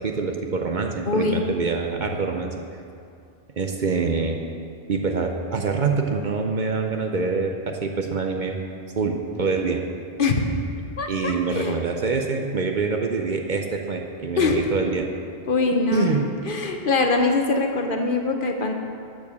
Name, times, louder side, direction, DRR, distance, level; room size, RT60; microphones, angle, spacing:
voice 1, 0.0-2.5 3.6-4.4 4.9-8.6 9.0-9.8 11.1-15.1 15.9-16.2, right 4 dB, 50° right, 3 dB, 0.7 m, -25 dB
voice 2, 1.0-1.4 10.2-10.4 11.0-11.7 14.4-14.6 15.5-18.7, left 3 dB, 55° left, 3 dB, 1.0 m, -23 dB
12.5 x 4.8 x 6.9 m, 2.4 s
omnidirectional pair, 1.1 m